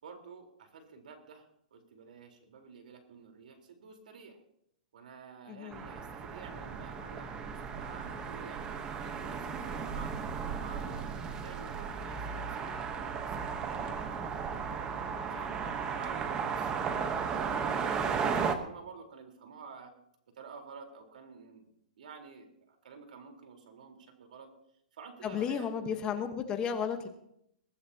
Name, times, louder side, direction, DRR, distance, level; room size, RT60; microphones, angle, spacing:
voice 1, 0.0-4.4 4.9-10.1 10.5-16.7 17.3-19.9 20.4-21.7 22.0-24.5 24.9-26.0, right 5 dB, 70° right, 4 dB, 4.0 m, -50 dB
voice 2, 5.5-5.9 25.2-27.1, left 7 dB, 20° left, 7 dB, 1.2 m, -33 dB
sound 1, 5.7-18.5, right 6 dB, 15° right, 1.1 m, -35 dB
22.5 x 15.0 x 2.9 m, 0.74 s
hypercardioid pair, 160°, 5 cm